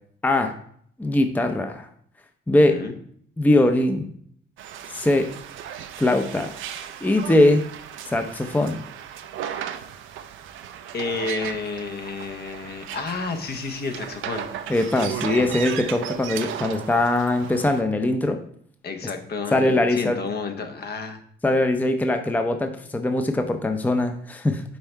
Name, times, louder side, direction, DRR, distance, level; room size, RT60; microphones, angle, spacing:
voice 1, 0.2-0.5 1.0-1.9 2.5-2.8 3.4-4.1 4.9-5.3 6.0-6.5 7.0-7.7 8.1-8.8 14.7-18.4 19.5-20.2 21.4-24.6, left 2 dB, 10° left, 6 dB, 0.5 m, -21 dB
voice 2, 2.5-3.0 10.9-14.5 18.8-21.2, left 4 dB, 55° left, 6 dB, 0.9 m, -31 dB
sound 1, 4.6-17.8, right 9 dB, 80° right, 0.5 m, -36 dB
5.6 x 4.3 x 4.5 m, 0.64 s
cardioid pair, 90°, 20 cm